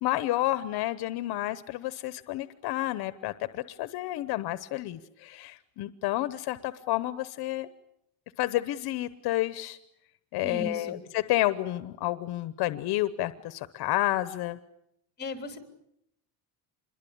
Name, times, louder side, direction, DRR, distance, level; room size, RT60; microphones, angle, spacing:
voice 1, 0.0-7.7 8.4-9.8 10.3-14.6, left 16 dB, 65° left, 13 dB, 1.0 m, -30 dB
voice 2, 10.4-11.0 15.2-15.6, left 3 dB, 25° left, 6 dB, 3.9 m, -36 dB
27.0 x 22.5 x 8.8 m, 0.78 s
cardioid pair, 175°, 41 cm